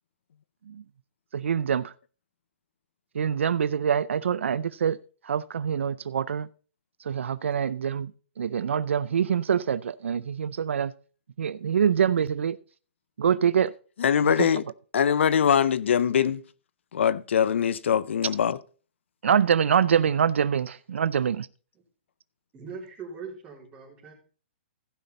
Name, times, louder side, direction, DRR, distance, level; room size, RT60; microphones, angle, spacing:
voice 1, 1.3-1.8 3.2-5.0 5.3-6.5 7.1-8.1 8.4-10.9 11.4-12.6 13.2-13.7 14.4-14.5 19.2-21.5, right 8 dB, 85° right, 0.5 m, -25 dB
voice 2, 14.0-14.7 14.9-16.4 16.9-18.6, left 8 dB, 75° left, 0.5 m, -22 dB
voice 3, 22.5-24.1, right 5 dB, 20° right, 3.8 m, -41 dB
15.5 x 5.7 x 4.1 m
hypercardioid pair, 155°, 6 cm